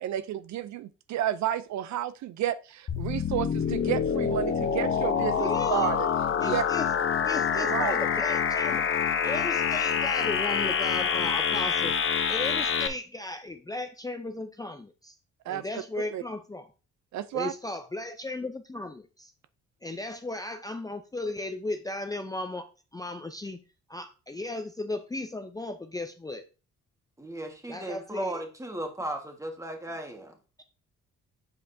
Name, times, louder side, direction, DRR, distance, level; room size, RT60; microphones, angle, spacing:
voice 1, 0.0-6.1 6.4-6.6 7.6-8.0 15.5-15.6 16.1-16.2 17.1-17.5, right 12 dB, 65° right, 0.5 m, -31 dB
sound 1, 2.9-12.9, left 7 dB, 45° left, 0.9 m, -26 dB
voice 2, 5.4-5.9 6.4-6.9 7.2-8.8 9.2-12.0 12.3-15.2 15.5-16.7 17.3-19.3 19.8-23.6 23.9-26.4 27.7-28.4, left 2 dB, 10° left, 0.5 m, -36 dB
voice 3, 27.2-30.4, right 1 dB, 10° right, 1.5 m, -36 dB
7.7 x 5.2 x 2.7 m
cardioid pair, 90°, 30 cm